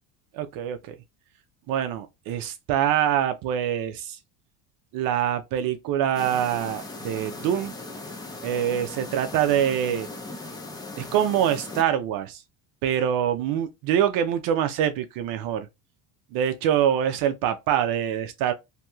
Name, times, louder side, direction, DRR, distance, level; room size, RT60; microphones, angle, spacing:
voice 1, 0.3-1.0 1.7-4.2 4.9-7.7 8.4-10.1 11.0-12.4 12.8-15.7 16.3-18.5, right 10 dB, 55° right, 0.5 m, -25 dB
sound 1, 6.1-11.8, left 2 dB, 10° left, 0.7 m, -38 dB
2.9 x 2.7 x 2.2 m
supercardioid pair, 125°, 41 cm